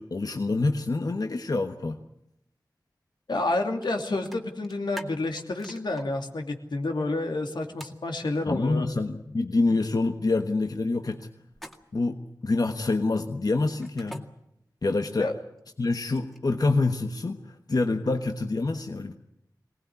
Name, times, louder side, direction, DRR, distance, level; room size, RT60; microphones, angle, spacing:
voice 1, 0.0-2.0 8.5-11.3 11.9-14.2 14.8-15.3 15.8-17.4 17.7-19.1, left 3 dB, 60° left, 5 dB, 1.3 m, -26 dB
voice 2, 3.3-8.9 15.2-15.3, left 2 dB, 90° left, 3 dB, 2.8 m, -29 dB
sound 1, 3.8-4.0 4.3-6.0 7.8-8.0 11.5-12.1 13.8-14.2 15.6-16.5, equal, ahead, 2.0 m, -43 dB
23.0 x 19.0 x 9.6 m, 0.80 s
wide cardioid pair, 75°, 7 cm